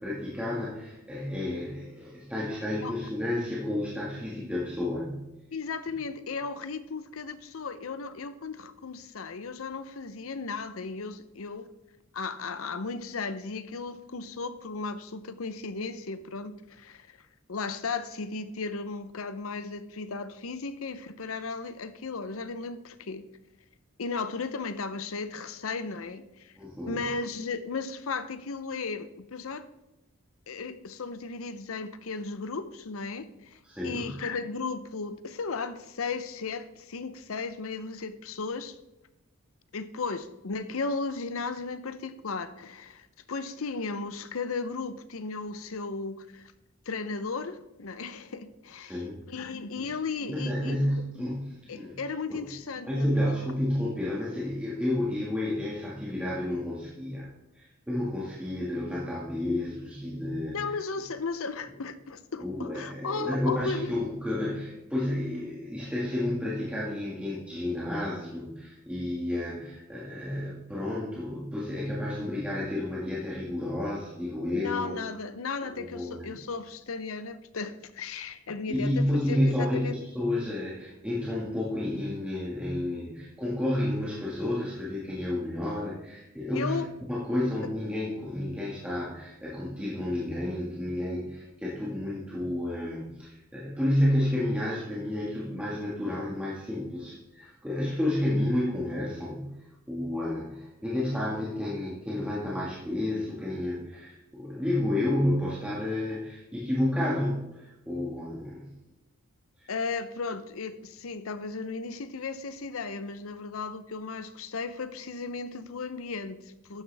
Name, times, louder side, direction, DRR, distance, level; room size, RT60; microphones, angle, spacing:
voice 1, 0.0-5.2 26.6-27.0 33.6-34.1 48.8-49.2 49.8-49.9 50.3-52.0 52.3-52.4 52.9-57.3 57.5-60.6 62.4-74.9 75.8-76.3 78.7-79.9 80.1-86.8 87.1-99.5 99.9-108.7, left 1 dB, 5° right, 1.8 m, -31 dB
voice 2, 5.5-11.7 12.1-17.2 17.5-23.2 24.0-26.5 26.9-29.7 30.5-38.8 39.7-46.5 46.9-49.0 49.3-50.9 51.7-53.5 60.5-63.9 74.5-80.0 86.5-86.9 109.7-116.8, left 4 dB, 70° left, 0.7 m, -35 dB
12.5 x 9.5 x 3.4 m
head